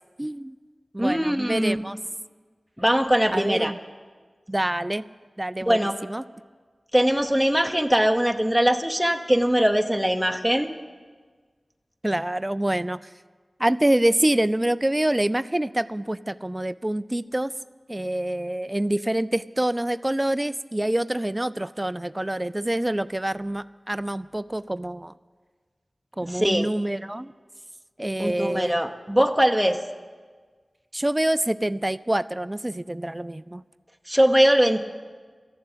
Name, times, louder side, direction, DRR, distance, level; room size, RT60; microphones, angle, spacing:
voice 1, 0.2-0.6 0.9-2.0 3.3-3.8 4.5-5.1 5.4-6.2 12.0-13.1 13.6-17.5 17.9-25.1 26.2-27.3 28.0-28.8 30.9-33.6, right 1 dB, 20° right, 16 dB, 0.4 m, -26 dB
voice 2, 1.0-1.8 2.8-3.7 5.7-5.9 6.9-10.7 26.3-26.7 28.2-29.8 34.1-34.8, equal, ahead, 4 dB, 0.9 m, -21 dB
13.5 x 7.5 x 9.8 m, 1.5 s
cardioid pair, 40°, 0 cm